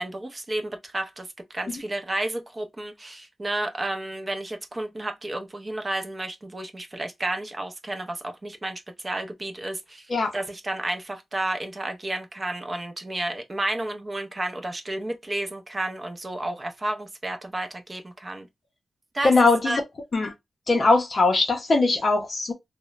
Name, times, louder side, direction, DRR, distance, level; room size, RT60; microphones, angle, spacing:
voice 1, 0.0-10.1 10.3-18.5 19.1-19.3 19.6-19.8, right 1 dB, 20° right, 0.4 m, -31 dB
voice 2, 19.2-19.8 20.1-20.3 20.7-22.5, left 3 dB, 35° left, 0.5 m, -20 dB
2.9 x 2.0 x 2.3 m
wide cardioid pair, 170°, 0 cm